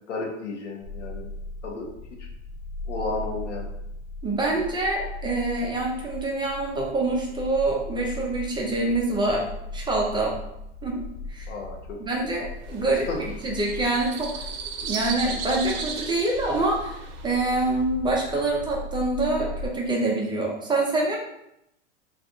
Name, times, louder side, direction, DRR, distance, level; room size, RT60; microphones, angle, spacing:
voice 1, 0.1-1.3 1.6-1.9 2.2-2.3 2.9-3.7 11.5-12.0 13.1-13.2, left 3 dB, 80° left, 1 dB, 0.8 m, -32 dB
sound 1, 0.8-19.7, left 2 dB, 60° left, 1.3 m, -38 dB
voice 2, 4.2-9.5 9.7-10.4 10.8-11.0 11.3-11.5 12.0-14.5 14.8-21.2, right 2 dB, 15° right, -1 dB, 0.4 m, -26 dB
sound 2, 12.6-17.8, right 5 dB, 55° right, 0.7 m, -36 dB
2.5 x 2.4 x 3.5 m, 0.82 s
hypercardioid pair, 100°, 35 cm